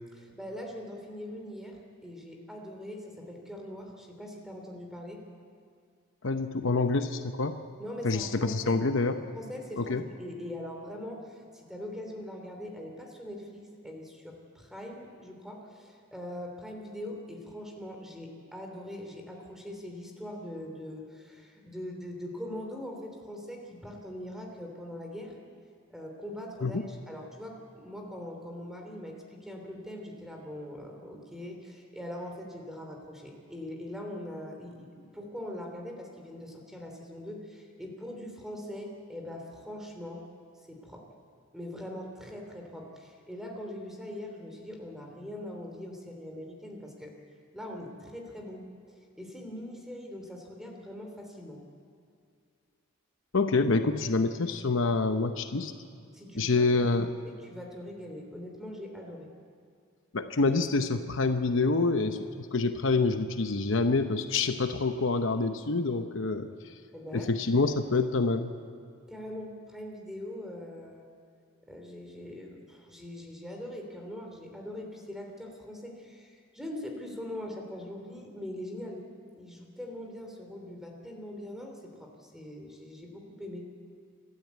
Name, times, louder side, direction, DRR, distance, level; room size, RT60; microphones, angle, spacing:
voice 1, 0.1-5.2 7.8-8.8 9.2-25.3 25.9-40.3 40.7-41.0 41.5-47.1 47.5-48.6 49.2-51.6 56.1-56.7 57.2-59.3 66.9-67.3 69.1-71.1 71.6-79.0 79.4-83.7, left 1 dB, ahead, 2 dB, 3.1 m, -42 dB
voice 2, 6.2-7.6 8.0-9.2 9.8-10.0 26.6-26.9 53.3-55.7 56.3-57.1 60.1-62.2 62.5-66.7 67.1-68.5, left 3 dB, 60° left, 8 dB, 0.8 m, -27 dB
27.5 x 12.5 x 8.2 m, 2.3 s
head